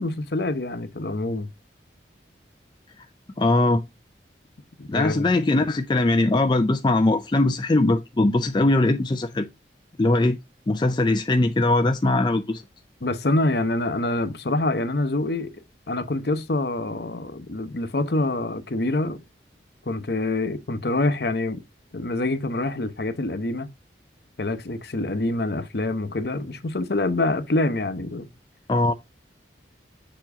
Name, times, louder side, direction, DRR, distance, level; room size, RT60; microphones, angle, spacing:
voice 1, 0.0-1.5 4.8-5.3 13.0-15.5 15.9-19.2 19.9-21.6 21.9-23.7 24.4-28.3, left 2 dB, 60° left, 0.8 m, -26 dB
voice 2, 3.4-3.8 4.9-9.5 10.0-10.4 10.7-12.6 28.7-28.9, left 2 dB, 25° left, 0.4 m, -21 dB
7.0 x 3.0 x 4.7 m
head